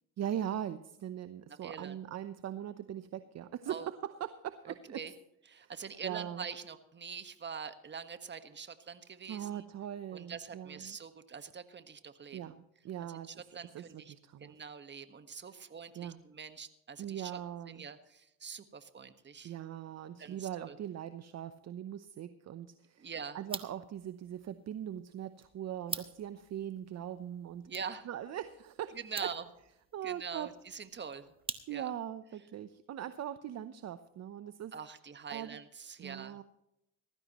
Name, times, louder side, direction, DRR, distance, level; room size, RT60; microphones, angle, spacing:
voice 1, 0.2-5.0 5.6-5.7 6.0-6.5 9.3-11.0 12.3-13.4 13.7-14.6 15.9-16.2 17.0-17.9 19.4-27.7 28.0-29.3 29.9-30.5 31.7-34.7 35.3-35.6 36.0-36.4, right 10 dB, 45° right, 12 dB, 0.8 m, -41 dB
voice 2, 1.6-2.0 3.7-3.9 4.9-5.1 5.5-9.6 10.1-12.4 13.3-14.1 14.4-17.4 17.7-19.5 20.2-20.8 23.0-23.4 27.7-28.1 28.9-29.5 30.0-31.3 31.7-31.9 34.7-36.4, right 6 dB, 30° right, 10 dB, 1.5 m, -44 dB
sound 1, 23.4-32.1, right 3 dB, 15° right, 1.3 m, -48 dB
19.0 x 14.5 x 3.1 m, 0.83 s
supercardioid pair, 90°, 36 cm